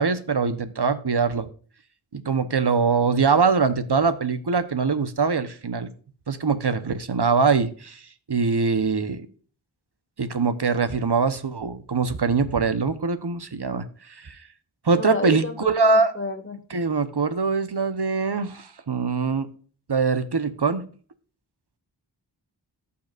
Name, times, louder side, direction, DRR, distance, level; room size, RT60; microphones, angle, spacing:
voice 1, 0.0-1.5 2.1-5.9 6.3-8.0 8.3-9.3 10.2-14.4 14.8-16.1 16.7-19.5 19.9-20.8, right 4 dB, 60° right, 12 dB, 1.1 m, -23 dB
voice 2, 14.9-16.6, left 2 dB, 25° left, 5 dB, 1.5 m, -31 dB
15.0 x 5.8 x 2.5 m, 0.42 s
wide cardioid pair, 50°, 46 cm